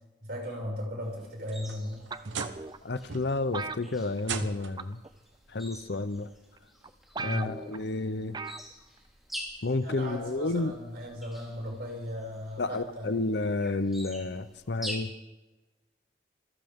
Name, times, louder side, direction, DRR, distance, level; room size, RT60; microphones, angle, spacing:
voice 1, 0.2-2.0 7.2-7.5 9.8-13.1, equal, 55° right, 6.1 m, -37 dB
sound 1, 1.0-15.0, equal, ahead, 2.5 m, -47 dB
Lock - Unlock, 1.2-2.8 3.1-3.6 4.2-4.9 6.1-6.2 6.8-6.9 8.5-8.6, right 5 dB, 75° right, 1.0 m, -38 dB
sound 2, 2.1-2.8 3.5-4.5 4.8-5.1 5.9-6.0 6.6-6.7 6.8-6.9 7.2-7.8 8.3-8.7 9.0-9.1, right 4 dB, 20° right, 0.5 m, -37 dB
voice 2, 2.8-5.0 5.5-6.3 7.2-8.4 9.6-10.7 12.6-15.1, left 2 dB, 60° left, 0.7 m, -31 dB
26.5 x 13.5 x 3.7 m
head